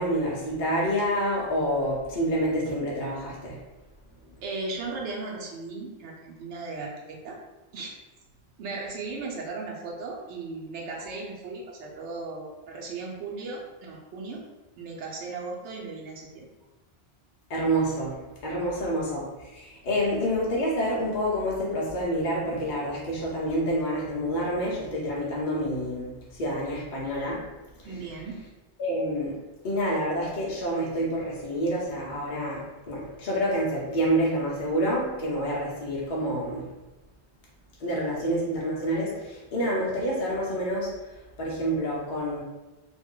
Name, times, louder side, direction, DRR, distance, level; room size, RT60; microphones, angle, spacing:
voice 1, 0.0-3.6 17.5-18.2 18.4-27.4 27.8-28.0 28.8-36.7 37.8-41.1 41.4-42.4, equal, 50° left, -5 dB, 0.7 m, -28 dB
voice 2, 4.4-7.4 7.7-7.9 8.6-14.4 14.8-16.5 27.8-28.4, right 3 dB, 90° right, -1 dB, 0.9 m, -36 dB
2.4 x 2.1 x 3.6 m, 1.1 s
omnidirectional pair, 1.1 m